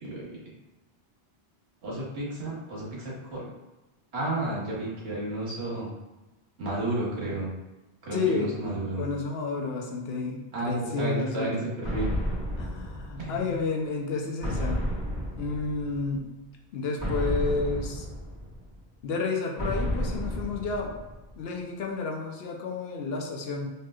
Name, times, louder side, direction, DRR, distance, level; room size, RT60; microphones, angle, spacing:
voice 1, 0.0-0.4 1.8-3.5 4.1-5.9 6.6-7.5 8.0-9.0 10.5-12.1 13.2-13.5, right 1 dB, 90° right, -5 dB, 1.3 m, -32 dB
voice 2, 8.1-8.5 9.0-11.7 12.6-14.8 15.4-16.3 16.7-18.1 19.0-20.9 21.4-23.7, left 4 dB, 75° left, 1 dB, 0.8 m, -31 dB
sound 1, 11.8-13.6 14.4-16.1 17.0-18.8 19.6-21.4, equal, 10° left, 1.4 m, -32 dB
3.2 x 2.8 x 2.3 m, 1.1 s
omnidirectional pair, 1.1 m